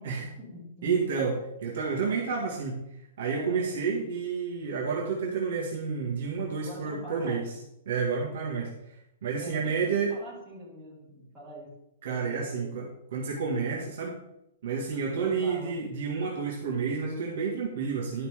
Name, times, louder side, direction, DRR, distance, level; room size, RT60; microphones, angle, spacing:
voice 1, 0.0-1.2 2.0-2.2 3.3-3.6 6.5-7.6 9.3-11.8 12.1-12.9 15.1-15.7, equal, 5° right, -10 dB, 3.1 m, -44 dB
voice 2, 0.8-1.4 1.6-2.8 3.2-7.4 7.9-8.7 9.2-10.1 12.0-14.2 14.6-18.3, right 5 dB, 50° right, -3 dB, 1.9 m, -30 dB
11.5 x 5.7 x 3.7 m, 0.83 s
hypercardioid pair, 180°, 0 cm